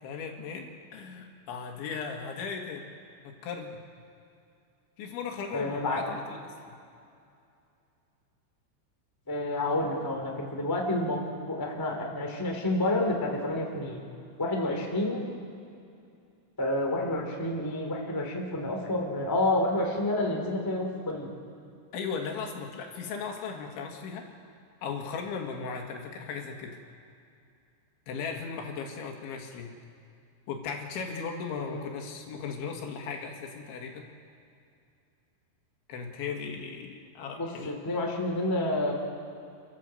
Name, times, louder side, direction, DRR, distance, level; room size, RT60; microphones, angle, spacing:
voice 1, 0.0-2.9 3.2-3.8 5.0-6.7 21.9-24.3 24.8-26.8 28.1-29.7 30.5-34.1 35.9-37.7, left 5 dB, 70° left, 2 dB, 4.1 m, -37 dB
voice 2, 5.5-6.0 9.3-11.2 11.5-14.0 14.4-15.2 16.6-21.3 31.6-31.8 37.4-38.9, left 1 dB, 5° left, 0 dB, 1.7 m, -29 dB
29.5 x 13.0 x 7.7 m, 2.5 s
omnidirectional pair, 5.6 m